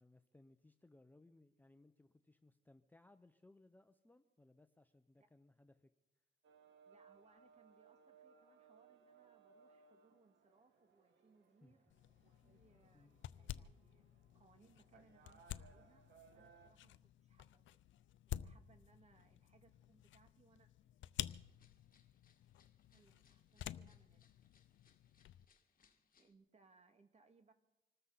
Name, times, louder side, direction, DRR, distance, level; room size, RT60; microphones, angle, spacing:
voice 1, 0.0-5.9 11.6-11.8 12.9-13.2, left 2 dB, 10° left, 9 dB, 0.8 m, -66 dB
sound 1, 6.4-16.7, right 6 dB, 65° right, 1.7 m, -67 dB
voice 2, 6.9-11.8 12.2-13.1 13.3-14.1 14.3-16.0 16.3-17.8 18.2-20.7 22.9-24.3 26.2-27.5, right 4 dB, 35° right, 7 dB, 2.1 m, -71 dB
sound 2, 11.9-25.5, left 12 dB, 75° left, 0.6 m, -51 dB
sound 3, 21.2-26.3, left 6 dB, 45° left, 1.8 m, -76 dB
26.0 x 13.5 x 4.1 m, 0.93 s
cardioid pair, 90°, 20 cm